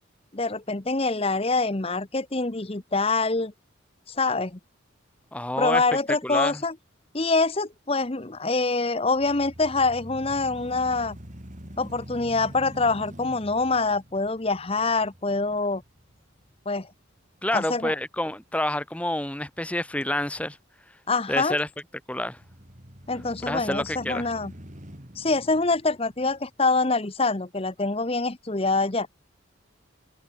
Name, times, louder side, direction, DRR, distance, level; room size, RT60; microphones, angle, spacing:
voice 1, 0.3-3.5 4.1-4.6 5.6-6.7 7.1-11.2 11.8-15.8 16.7-16.9 17.5-17.9 21.1-21.6 23.1-24.5 25.2-29.1, left 3 dB, 30° left, 1.0 m, -25 dB
voice 2, 5.3-5.8 6.2-6.6 17.4-20.6 21.3-21.7 22.1-22.4 23.5-24.3, left 1 dB, 5° left, 1.1 m, -28 dB
sound 1, 9.1-17.2 17.7-17.8 22.3-26.8, equal, 35° right, 4.5 m, -45 dB
head